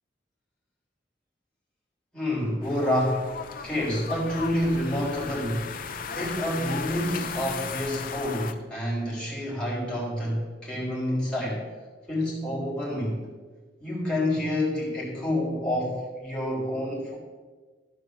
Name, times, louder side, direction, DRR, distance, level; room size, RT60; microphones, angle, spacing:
voice 1, 2.1-3.3 3.6-5.7 6.1-11.7 12.1-13.2 13.8-17.2, left 1 dB, 5° left, -6 dB, 3.4 m, -28 dB
sound 1, 2.6-8.5, left 6 dB, 50° left, 0.6 m, -36 dB
13.0 x 5.1 x 6.6 m, 1.4 s
head